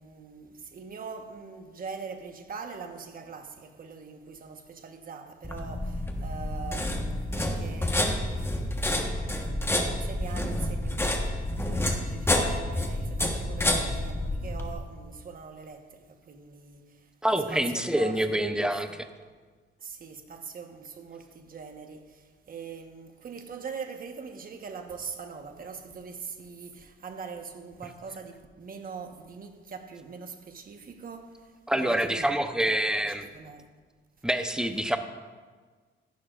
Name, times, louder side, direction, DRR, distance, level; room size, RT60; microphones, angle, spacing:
voice 1, 0.0-8.6 8.9-19.1 19.8-31.5 31.8-32.3 32.7-32.8 33.0-33.7, right 5 dB, 45° right, 1.2 m, -42 dB
sound 1, 5.4-14.7, left 1 dB, 10° left, 1.3 m, -29 dB
voice 2, 17.2-18.9 31.7-33.3 34.2-35.0, right 1 dB, 5° right, 0.8 m, -26 dB
14.5 x 11.5 x 2.5 m
cardioid pair, 90°, 20 cm